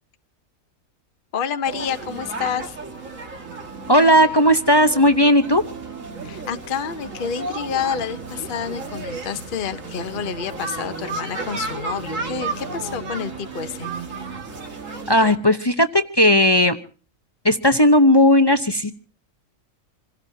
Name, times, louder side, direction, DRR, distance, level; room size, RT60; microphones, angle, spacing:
voice 1, 1.3-2.8 6.2-13.9, left 7 dB, 45° left, 10 dB, 1.0 m, -28 dB
sound 1, 1.6-15.3, right 3 dB, 70° right, 2.4 m, -33 dB
voice 2, 3.9-5.6 15.1-16.8 17.4-18.9, equal, 20° left, 8 dB, 0.8 m, -15 dB
27.0 x 17.0 x 2.8 m, 0.40 s
omnidirectional pair, 1.4 m